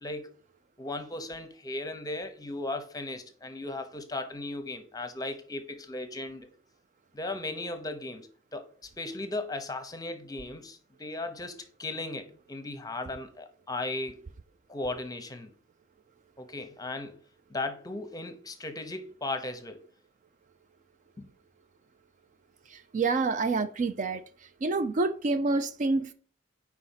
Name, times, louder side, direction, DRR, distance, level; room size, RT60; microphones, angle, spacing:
voice 1, 0.0-0.3 0.8-6.5 7.1-8.7 9.0-14.2 14.7-15.5 16.4-17.2 17.5-19.8 21.2-21.3, left 2 dB, 20° left, 0.8 m, -36 dB
voice 2, 22.7-24.2 24.6-26.1, right 3 dB, 40° right, 0.4 m, -27 dB
4.8 x 4.1 x 5.7 m
head